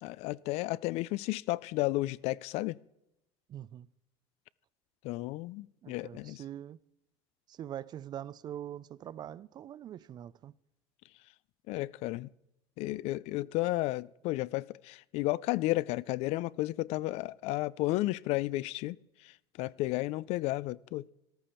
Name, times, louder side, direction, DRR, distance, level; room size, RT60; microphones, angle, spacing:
voice 1, 0.0-2.8 5.0-6.4 11.7-12.3 12.8-19.0 19.6-21.0, left 18 dB, 60° left, 0.4 m, -32 dB
voice 2, 3.5-3.9 5.8-6.8 7.5-10.5, right 11 dB, 35° right, 0.4 m, -43 dB
13.5 x 13.0 x 4.4 m
supercardioid pair, 125°, 12 cm